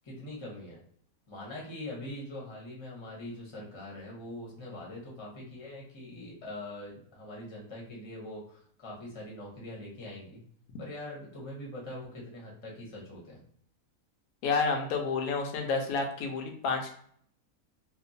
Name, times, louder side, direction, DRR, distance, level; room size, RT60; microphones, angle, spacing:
voice 1, 0.0-0.8 1.3-10.4 10.8-13.4, left 1 dB, 25° left, -3 dB, 0.7 m, -43 dB
voice 2, 14.4-16.9, left 4 dB, 75° left, 3 dB, 1.0 m, -30 dB
2.9 x 2.1 x 2.6 m, 0.62 s
omnidirectional pair, 1.6 m